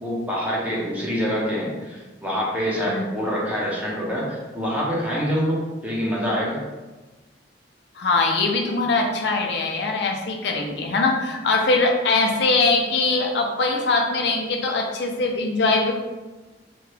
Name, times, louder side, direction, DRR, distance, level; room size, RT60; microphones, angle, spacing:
voice 1, 0.0-6.6, equal, 10° right, -5 dB, 0.6 m, -26 dB
voice 2, 8.0-15.9, left 3 dB, 65° left, 2 dB, 0.5 m, -22 dB
2.9 x 2.3 x 3.2 m, 1.2 s
head